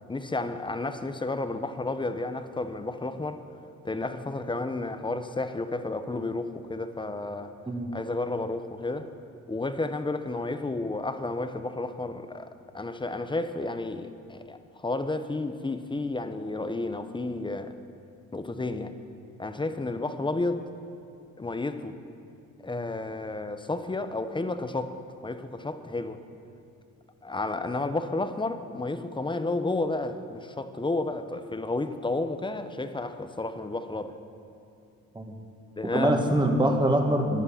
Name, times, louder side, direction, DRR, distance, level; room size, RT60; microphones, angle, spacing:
voice 1, 0.1-3.5 3.8-7.5 7.9-9.1 9.5-17.7 18.3-18.9 19.4-20.7 21.4-22.0 22.6-25.0 25.2-26.2 27.2-34.2 35.8-36.1, left 2 dB, 15° left, 9 dB, 0.9 m, -31 dB
voice 2, 35.9-37.4, right 1 dB, 15° right, 3 dB, 1.9 m, -24 dB
18.0 x 11.0 x 5.8 m, 2.5 s
cardioid pair, 90°, 30 cm